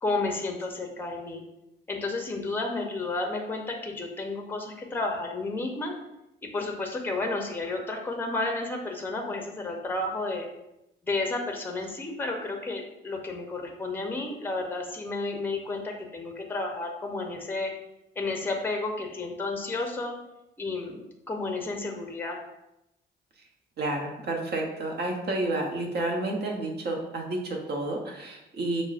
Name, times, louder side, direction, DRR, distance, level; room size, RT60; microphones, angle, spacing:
voice 1, 0.0-1.4 1.9-5.9 6.4-10.5 11.0-17.7 18.2-20.2 20.6-21.0 21.3-22.4, left 2 dB, 10° left, 2 dB, 0.6 m, -31 dB
voice 2, 23.8-28.8, right 2 dB, 55° right, 1 dB, 0.9 m, -30 dB
6.0 x 2.1 x 2.4 m, 0.88 s
cardioid pair, 90°, 20 cm